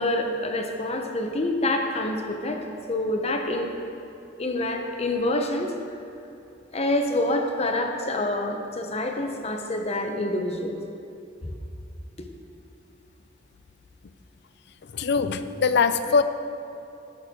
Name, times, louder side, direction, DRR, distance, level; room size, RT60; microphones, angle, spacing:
voice 1, 0.0-3.7 4.4-5.7 6.7-10.8, left 1 dB, 35° left, 3 dB, 0.9 m, -27 dB
voice 2, 14.8-16.2, left 5 dB, 60° left, 11 dB, 0.5 m, -22 dB
17.0 x 6.4 x 3.8 m, 2.7 s
head